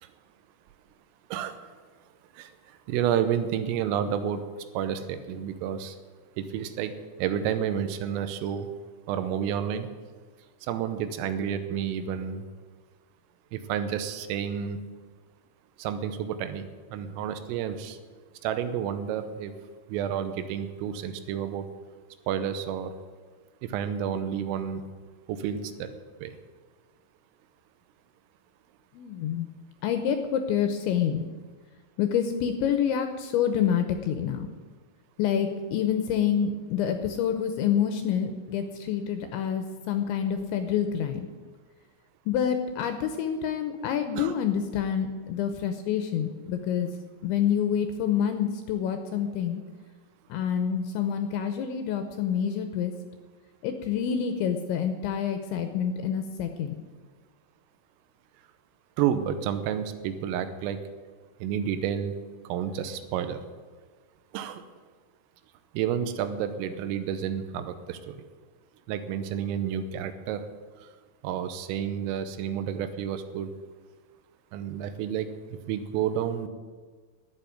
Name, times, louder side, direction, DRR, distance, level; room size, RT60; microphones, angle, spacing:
voice 1, 2.9-4.4 4.8-6.0 6.4-6.9 7.2-8.7 9.1-9.9 10.7-12.4 13.5-14.8 15.8-18.0 18.4-19.5 19.9-21.7 22.3-22.9 23.6-24.8 25.3-25.9 26.2-26.3 44.2-44.3 59.0-60.8 61.4-62.1 62.5-63.4 64.3-64.6 65.8-68.2 68.9-70.4 71.2-73.5 74.5-75.3 75.7-76.5, right 9 dB, 85° right, 10 dB, 3.5 m, -30 dB
voice 2, 28.9-29.5 29.8-31.2 32.0-34.5 35.2-41.3 42.3-46.9 47.2-49.6 50.3-52.9 53.6-56.7, left 8 dB, 75° left, 7 dB, 2.9 m, -27 dB
11.5 x 8.4 x 9.4 m, 1.5 s
omnidirectional pair, 5.8 m